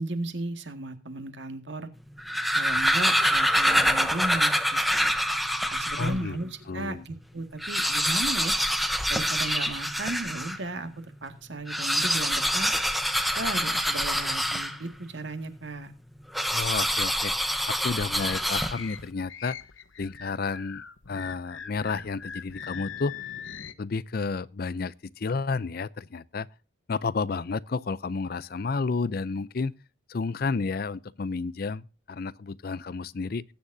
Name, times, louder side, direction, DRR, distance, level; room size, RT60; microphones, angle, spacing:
voice 1, 0.0-1.9 2.5-5.1 5.7-8.6 9.1-12.7 13.4-15.9, right 2 dB, 60° right, 1.9 m, -35 dB
sound 1, 2.1-6.2 6.8-6.9 7.1-7.2 7.5-10.6 11.6-15.0 16.3-19.0, equal, ahead, 0.8 m, -26 dB
voice 2, 6.0-6.4 6.7-7.0 16.5-17.3 17.7-19.6 20.0-23.1 23.8-26.5 26.9-29.7 30.1-33.4, left 4 dB, 45° left, 0.5 m, -31 dB
sound 2, 18.1-23.7, left 7 dB, 75° left, 1.0 m, -41 dB
19.5 x 9.4 x 2.7 m
head